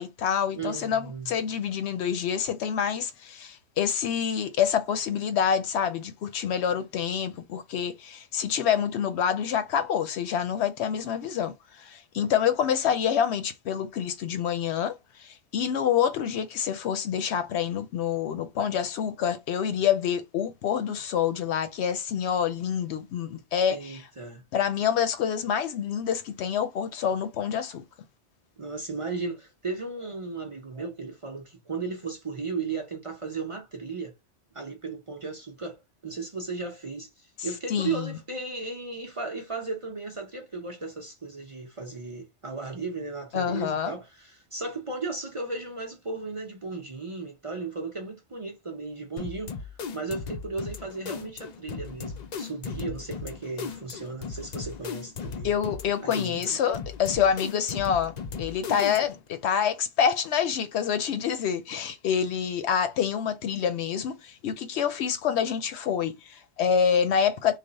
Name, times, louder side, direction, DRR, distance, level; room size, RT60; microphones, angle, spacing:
voice 1, 0.0-14.9 15.2-24.1 24.5-27.8 37.7-38.2 43.3-43.9 55.4-67.6, left 8 dB, 75° left, 0.8 m, -27 dB
voice 2, 0.5-1.3 23.7-24.4 28.6-34.1 34.5-35.8 36.0-49.5 49.9-55.5 56.0-56.5, right 4 dB, 35° right, 0.6 m, -35 dB
sound 1, 49.2-59.3, left 5 dB, 55° left, 0.4 m, -37 dB
3.3 x 2.1 x 3.9 m
omnidirectional pair, 1.2 m